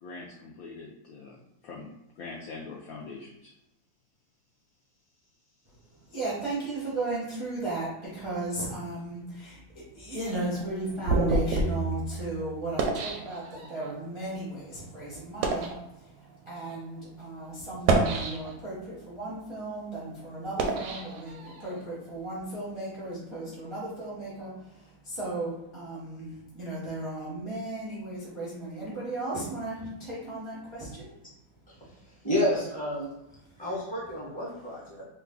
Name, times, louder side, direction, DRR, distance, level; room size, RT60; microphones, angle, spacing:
voice 1, 0.0-1.4 1.6-3.5, left 3 dB, 85° left, -1 dB, 0.7 m, -43 dB
voice 2, 5.9-31.2 33.5-33.6, right 2 dB, 35° right, -7 dB, 0.4 m, -35 dB
sound 1, 10.2-13.9 14.6-14.7 15.3-15.8 16.6-16.7 17.7-18.8 19.3-21.8, right 3 dB, 75° right, 1.0 m, -29 dB
voice 3, 32.2-33.1 33.6-35.0, left 1 dB, 5° left, -7 dB, 0.6 m, -29 dB
3.1 x 2.3 x 3.6 m, 0.89 s
omnidirectional pair, 2.1 m